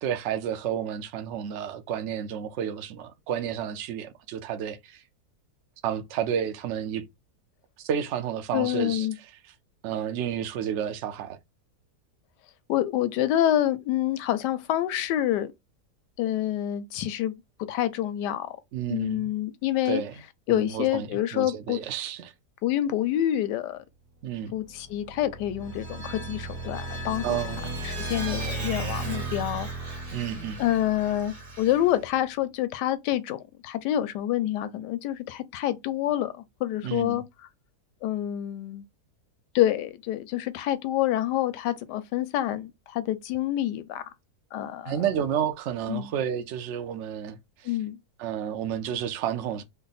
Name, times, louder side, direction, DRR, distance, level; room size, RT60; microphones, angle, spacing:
voice 1, 0.0-5.0 5.8-7.0 7.8-9.1 9.8-11.4 18.7-19.3 19.9-20.1 20.5-22.3 24.2-24.5 27.2-27.9 30.1-30.6 36.8-37.2 44.9-47.7 48.2-49.6, right 9 dB, 65° right, 0.7 m, -31 dB
voice 2, 8.5-9.1 12.7-15.5 16.2-17.3 17.7-18.5 18.9-20.0 20.5-21.8 22.6-23.8 24.5-27.4 27.8-29.7 30.6-37.2 38.0-38.8 39.5-44.0 44.5-45.0 45.9-46.1 47.6-48.0, left 12 dB, 90° left, 1.2 m, -27 dB
sound 1, 24.5-32.2, right 3 dB, 90° right, 1.2 m, -37 dB
Vehicle, 25.6-32.0, right 1 dB, 25° right, 1.3 m, -40 dB
3.4 x 2.1 x 3.9 m
omnidirectional pair, 1.8 m